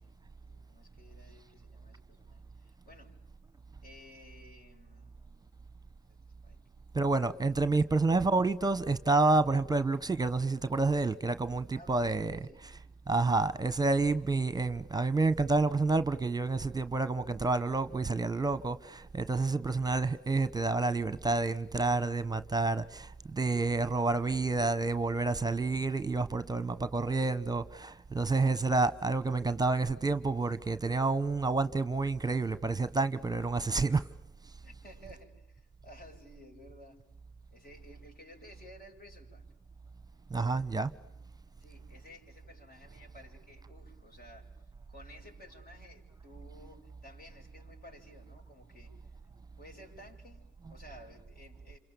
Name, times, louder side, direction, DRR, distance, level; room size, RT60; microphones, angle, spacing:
voice 1, 0.0-3.1 3.8-5.1 6.1-6.2 6.4-6.6 7.7-7.8 11.7-12.6 34.6-37.0 37.5-39.4 41.6-44.5 44.9-49.1 49.6-51.8, left 1 dB, 50° left, 7.9 m, -55 dB
voice 2, 6.9-12.7 13.1-34.1 40.3-40.9 50.7-50.8, right 3 dB, 20° right, 1.1 m, -29 dB
29.0 x 27.0 x 7.1 m
cardioid pair, 90°, 20 cm